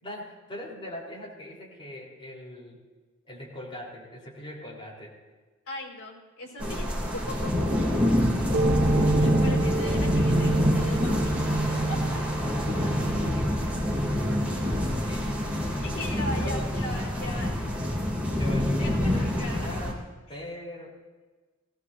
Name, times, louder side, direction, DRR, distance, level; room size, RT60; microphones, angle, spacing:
voice 1, 0.0-2.8 3.2-5.2 6.6-6.7 8.1-9.4 12.5-14.1 15.0-15.5 15.9-16.1 16.3-16.7 18.4-20.0 20.3-20.9, left 1 dB, 25° left, -4 dB, 4.0 m, -41 dB
voice 2, 5.7-7.7 9.0-11.5 11.9-12.0 15.8-17.6 18.8-19.8, left 1 dB, 85° left, -3 dB, 4.7 m, -39 dB
sound 1, 6.6-19.9, left 1 dB, 5° right, 3.0 m, -27 dB
sound 2, 8.5-15.8, right 3 dB, 50° right, 1.0 m, -29 dB
19.5 x 17.5 x 2.8 m, 1.3 s
head